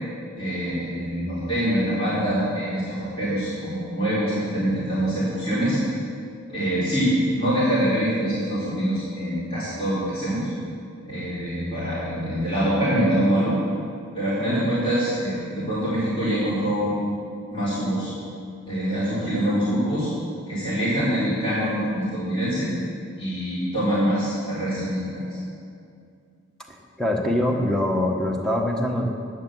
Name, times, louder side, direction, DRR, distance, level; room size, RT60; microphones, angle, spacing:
voice 1, 0.4-5.8 6.5-10.5 11.0-13.5 14.1-16.9 17.5-18.1 18.7-20.1 20.5-22.7 23.2-25.2, equal, 25° left, -11 dB, 4.1 m, -24 dB
voice 2, 26.7-29.1, left 1 dB, 5° left, 0 dB, 1.2 m, -24 dB
11.5 x 9.0 x 7.7 m, 2.3 s
head